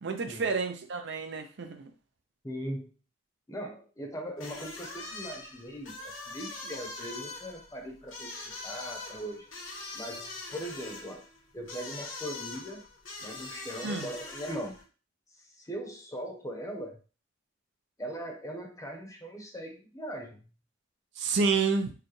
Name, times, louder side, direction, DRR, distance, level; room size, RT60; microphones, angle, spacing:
voice 1, 0.0-1.9 13.8-14.1 21.2-21.9, right 4 dB, 60° right, 6 dB, 0.5 m, -29 dB
voice 2, 2.4-2.9 3.5-8.3 8.6-9.5 9.9-11.2 11.5-12.8 13.2-14.8 15.6-17.0 18.0-20.5, equal, 15° left, 2 dB, 0.8 m, -40 dB
sound 1, 4.4-14.8, left 3 dB, 85° left, 1.4 m, -43 dB
4.7 x 2.3 x 3.1 m, 0.35 s
head